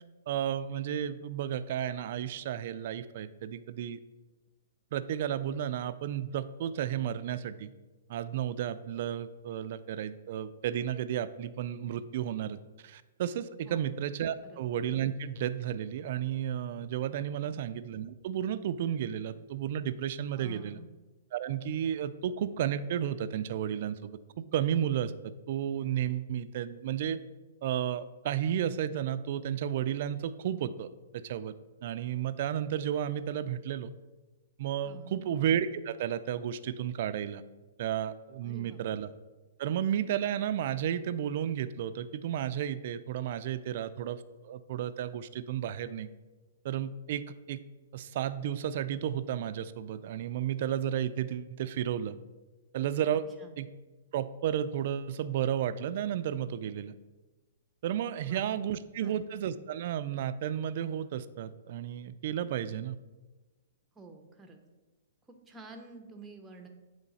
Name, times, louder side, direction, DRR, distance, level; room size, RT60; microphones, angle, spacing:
voice 1, 0.3-4.0 4.9-7.7 8.1-12.6 12.8-20.8 21.3-24.2 24.5-27.2 27.6-30.9 31.1-31.5 31.8-33.9 34.6-37.4 37.8-39.1 39.6-46.1 46.6-47.6 47.9-52.2 52.7-53.3 53.6-53.7 54.1-56.9 57.8-63.0, right 10 dB, 50° right, 13 dB, 0.3 m, -32 dB
voice 2, 20.4-20.9 34.8-35.2 38.4-39.0 53.1-53.6 58.2-58.5 59.0-59.3 64.0-64.6 65.3-66.7, right 3 dB, 10° right, 3 dB, 0.6 m, -50 dB
8.2 x 3.2 x 4.0 m, 1.2 s
hypercardioid pair, 150°, 0 cm